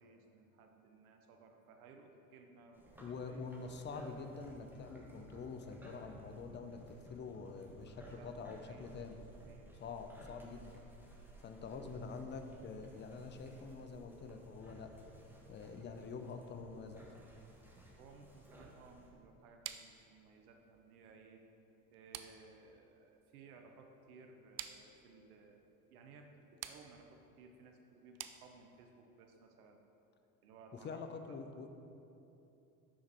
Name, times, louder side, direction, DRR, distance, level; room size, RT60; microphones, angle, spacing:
voice 1, 0.0-3.4 8.2-8.9 9.3-9.8 11.7-11.8 18.0-21.4 21.9-25.6 25.9-29.8 30.4-31.4, right 4 dB, 80° right, 3 dB, 0.8 m, -59 dB
sound 1, 2.7-19.1, right 1 dB, 5° right, 1.4 m, -57 dB
voice 2, 3.0-9.2 9.8-10.8 11.4-15.0 15.5-17.0 30.7-31.7, left 4 dB, 25° left, 7 dB, 0.6 m, -46 dB
sound 2, 19.6-29.0, right 11 dB, 35° right, 0.4 m, -52 dB
6.4 x 5.8 x 4.4 m, 2.9 s
hypercardioid pair, 75°, 44 cm